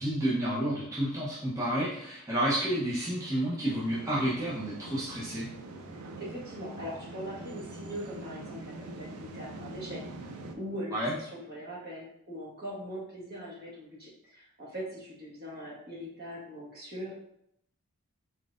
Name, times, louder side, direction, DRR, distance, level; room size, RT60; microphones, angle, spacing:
voice 1, 0.0-5.5 10.9-11.1, right 1 dB, 15° right, -9 dB, 0.8 m, -30 dB
sound 1, 3.6-10.6, right 2 dB, 85° right, 0.5 m, -44 dB
voice 2, 5.9-10.0 10.5-17.1, equal, 45° right, -5 dB, 1.4 m, -41 dB
4.0 x 4.0 x 2.5 m, 0.74 s
head